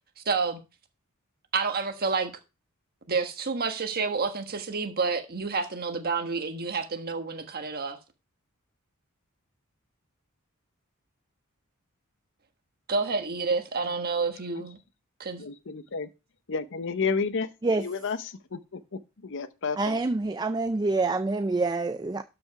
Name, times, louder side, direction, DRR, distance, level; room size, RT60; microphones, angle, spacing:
voice 1, 0.2-0.6 1.5-2.3 3.1-8.0 12.9-14.8 15.2-15.4, right 4 dB, 45° right, 1.4 m, -29 dB
voice 2, 15.4-16.1 16.5-17.5 17.8-18.8 19.2-20.0, left 5 dB, 60° left, 0.8 m, -31 dB
voice 3, 19.8-22.2, right 3 dB, 20° right, 0.4 m, -26 dB
12.5 x 5.3 x 4.8 m
head